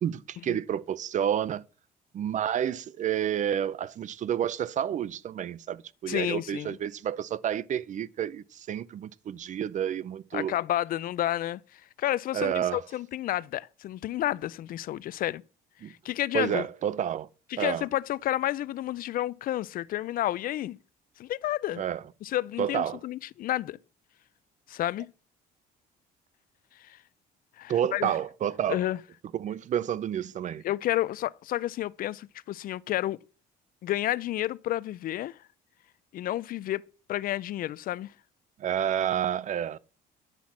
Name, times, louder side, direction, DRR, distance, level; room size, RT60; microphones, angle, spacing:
voice 1, 0.0-1.6 2.1-10.6 12.3-12.8 15.8-15.9 16.3-17.3 17.6-17.8 21.8-22.0 22.6-23.0 27.7-28.8 29.3-30.6 38.6-39.8, right 10 dB, 45° right, 0.6 m, -29 dB
voice 2, 6.1-6.8 10.3-15.4 15.8-16.7 17.5-20.8 21.2-21.8 22.2-23.8 24.7-25.1 26.8-27.0 27.6-28.1 28.7-29.0 30.6-33.2 33.8-35.4 36.1-36.8 37.1-38.1, left 13 dB, 55° left, 0.4 m, -30 dB
10.5 x 5.8 x 7.3 m
cardioid pair, 110°, 17 cm